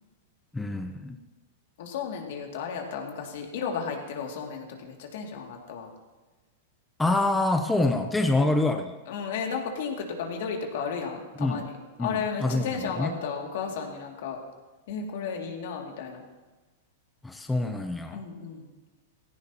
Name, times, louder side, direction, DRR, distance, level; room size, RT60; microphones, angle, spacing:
voice 1, 0.5-1.2 7.0-8.9 11.4-11.6 12.0-13.1 17.2-18.2, left 2 dB, 10° left, 5 dB, 0.9 m, -26 dB
voice 2, 1.8-5.9 8.3-8.5 9.1-14.4 14.9-16.2 18.1-18.7, left 6 dB, 65° left, 1 dB, 2.6 m, -34 dB
16.5 x 15.5 x 3.0 m, 1.2 s
hypercardioid pair, 115°, 0 cm